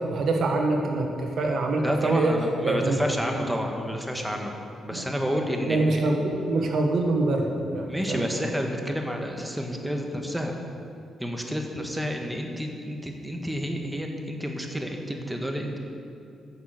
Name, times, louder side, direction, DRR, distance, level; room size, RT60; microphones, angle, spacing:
voice 1, 0.1-2.3 2.6-2.9 4.9-5.0 5.7-8.2, right 2 dB, 65° right, 2 dB, 1.6 m, -25 dB
voice 2, 1.8-4.5 4.8-6.0 7.8-10.5 11.2-15.8, equal, 5° right, 2 dB, 1.5 m, -30 dB
9.5 x 6.7 x 7.9 m, 2.5 s
cardioid pair, 75°, 0 cm